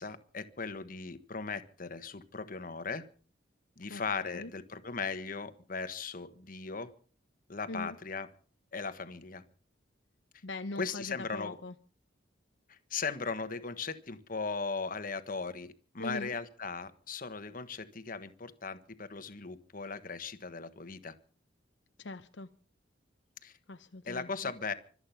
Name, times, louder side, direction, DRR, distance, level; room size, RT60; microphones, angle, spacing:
voice 1, 0.0-3.1 3.8-6.9 7.5-8.3 8.7-9.4 10.8-11.6 12.7-21.1 23.4-23.5 24.1-24.7, left 4 dB, 45° left, 11 dB, 1.4 m, -38 dB
voice 2, 3.9-4.5 7.7-8.0 10.4-11.7 16.0-16.3 22.0-22.5 23.7-24.5, left 2 dB, 75° left, 9 dB, 0.8 m, -41 dB
25.5 x 8.8 x 5.8 m, 0.42 s
head